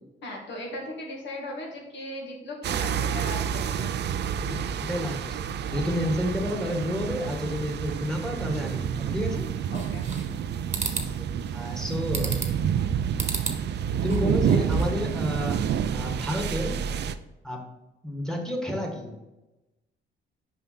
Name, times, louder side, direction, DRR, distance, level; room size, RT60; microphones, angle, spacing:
voice 1, 0.2-3.9 9.7-10.0, left 1 dB, 65° left, 0 dB, 2.2 m, -37 dB
sound 1, 2.6-17.1, right 8 dB, 60° right, 0.5 m, -29 dB
voice 2, 4.4-9.5 11.0-11.2 11.5-12.4 12.8-13.0 14.0-16.8 17.4-17.6 18.0-19.1, left 1 dB, 5° left, 1 dB, 1.7 m, -31 dB
sound 2, 9.7-10.4 10.7-11.1 12.1-12.6 13.2-13.6 14.0-15.0, right 3 dB, 35° right, 1.2 m, -31 dB
5.6 x 5.2 x 4.3 m, 0.99 s
cardioid pair, 90°, 20 cm